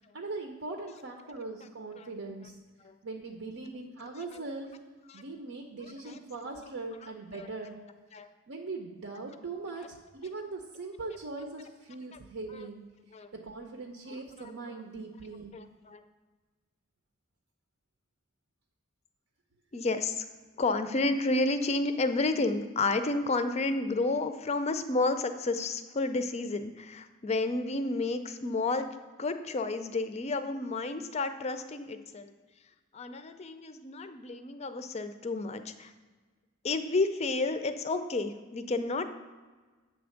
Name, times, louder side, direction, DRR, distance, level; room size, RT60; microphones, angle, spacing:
voice 1, 0.1-2.5 3.0-4.7 5.1-7.8 8.5-12.8 13.3-15.6, right 3 dB, 70° right, 2 dB, 0.7 m, -40 dB
voice 2, 15.5-16.0 19.7-20.3 20.6-28.9 29.2-32.3 32.9-35.9 36.6-39.1, left 3 dB, 30° left, 9 dB, 0.4 m, -31 dB
8.1 x 3.4 x 6.4 m, 1.4 s
head